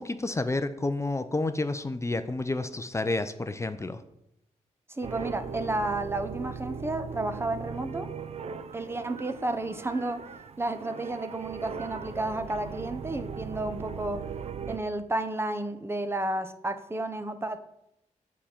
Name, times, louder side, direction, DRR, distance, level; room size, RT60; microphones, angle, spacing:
voice 1, 0.0-4.0, left 2 dB, 20° left, 10 dB, 0.5 m, -30 dB
voice 2, 4.9-8.1 8.7-10.2 10.6-14.3 14.7-17.6, right 2 dB, 20° right, 10 dB, 0.8 m, -32 dB
sound 1, 5.0-14.8, right 6 dB, 55° right, 0.5 m, -39 dB
8.4 x 5.0 x 7.3 m, 0.81 s
wide cardioid pair, 105°, 13 cm